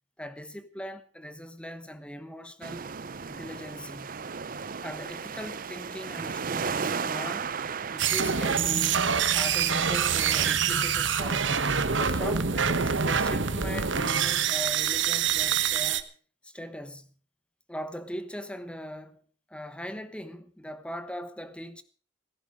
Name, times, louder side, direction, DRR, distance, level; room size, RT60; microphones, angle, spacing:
voice 1, 0.2-2.9 3.3-4.2 4.8-7.5 7.9-9.0 9.3-11.7 12.0-16.1 16.4-17.1 17.7-19.2 19.5-21.8, equal, 5° left, 1.1 m, -40 dB
sound 1, 2.6-10.5, right 6 dB, 45° right, 0.7 m, -35 dB
sound 2, 8.0-16.0, right 7 dB, 70° right, 1.1 m, -25 dB
16.0 x 14.5 x 5.0 m
head